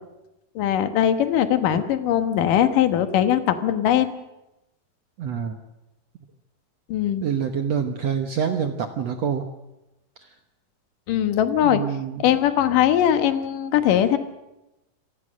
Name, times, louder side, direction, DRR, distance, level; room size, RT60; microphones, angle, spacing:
voice 1, 0.6-4.1 6.9-7.2 11.1-11.8 12.2-14.2, left 10 dB, 65° left, 9 dB, 2.7 m, -20 dB
voice 2, 5.2-5.6 7.2-9.5 11.6-12.3, right 7 dB, 70° right, 6 dB, 1.5 m, -26 dB
27.5 x 19.5 x 6.4 m, 0.94 s
omnidirectional pair, 4.7 m